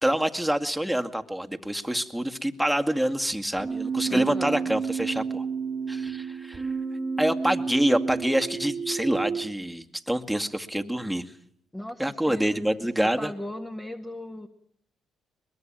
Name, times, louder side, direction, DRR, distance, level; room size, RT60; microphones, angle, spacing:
voice 1, 0.0-5.5 5.9-6.7 7.2-11.2 12.0-13.3, right 1 dB, ahead, 5 dB, 2.1 m, -26 dB
Keyboard (musical), 3.6-9.5, right 5 dB, 30° right, 1.7 m, -31 dB
voice 2, 4.1-4.7 11.7-14.5, left 1 dB, 15° left, 4 dB, 2.0 m, -37 dB
23.0 x 21.5 x 9.1 m, 0.69 s
supercardioid pair, 65°, 0 cm